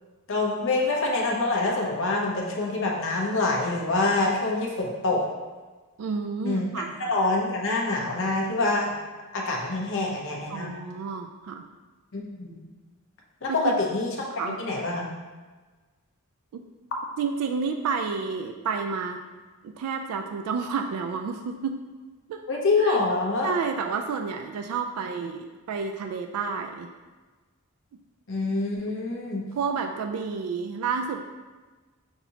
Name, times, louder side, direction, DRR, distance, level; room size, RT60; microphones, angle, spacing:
voice 1, 0.3-5.2 6.4-6.7 7.0-8.9 9.3-10.7 12.1-12.6 13.4-14.1 14.6-15.1 22.5-23.5 28.3-29.4, left 3 dB, 60° left, -2 dB, 0.8 m, -26 dB
voice 2, 6.0-6.9 10.5-11.7 13.5-13.8 14.4-14.6 16.5-16.6 17.2-19.2 19.8-21.8 22.3-22.4 22.8-23.0 23.4-26.9 29.6-31.2, right 5 dB, 75° right, 6 dB, 0.3 m, -30 dB
5.9 x 2.7 x 2.8 m, 1.3 s
head